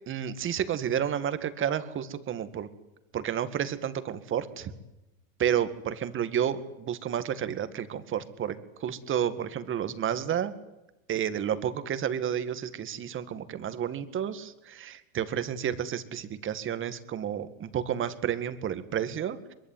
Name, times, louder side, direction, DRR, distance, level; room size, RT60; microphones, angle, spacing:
voice 1, 0.1-2.7 3.1-4.7 5.4-10.6 11.1-19.5, right 9 dB, 30° right, 12 dB, 2.1 m, -31 dB
23.5 x 22.0 x 9.4 m, 0.97 s
hypercardioid pair, 120°, 42 cm